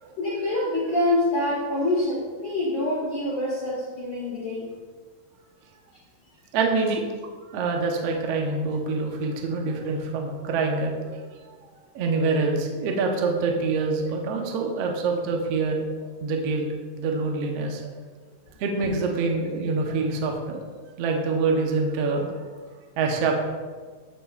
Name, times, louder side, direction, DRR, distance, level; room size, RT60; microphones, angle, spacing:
voice 1, 0.2-4.7, left 1 dB, 50° left, -6 dB, 1.6 m, -26 dB
voice 2, 6.5-7.0 7.5-11.2 11.5-11.6 11.9-15.8 16.2-16.7 17.0-17.9 18.6-20.6 21.0-22.3 23.0-23.4, right 4 dB, 70° right, 1 dB, 1.6 m, -25 dB
13.5 x 6.8 x 2.4 m, 1.5 s
omnidirectional pair, 3.7 m